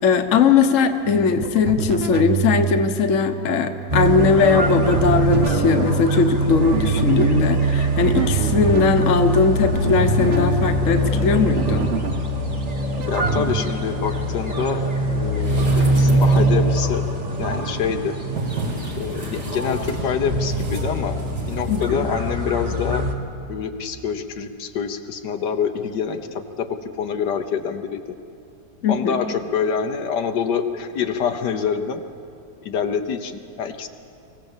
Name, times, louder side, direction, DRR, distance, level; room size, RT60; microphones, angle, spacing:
voice 1, 0.0-11.8 21.7-22.0 28.8-29.1, left 5 dB, 50° left, 7 dB, 1.3 m, -19 dB
sound 1, 1.0-13.6, right 8 dB, 50° right, 0.8 m, -28 dB
sound 2, 3.9-23.1, right 1 dB, 25° right, 1.5 m, -23 dB
voice 2, 13.1-17.0 17.4-18.2 19.0-21.2 21.5-23.1 23.5-28.2 28.9-32.0 32.6-33.9, left 7 dB, 80° left, 6 dB, 1.5 m, -26 dB
sound 3, 15.4-16.7 17.3-21.8 22.1-22.2, right 1 dB, 70° right, 3.1 m, -32 dB
25.0 x 16.0 x 7.3 m, 2.5 s
omnidirectional pair, 1.8 m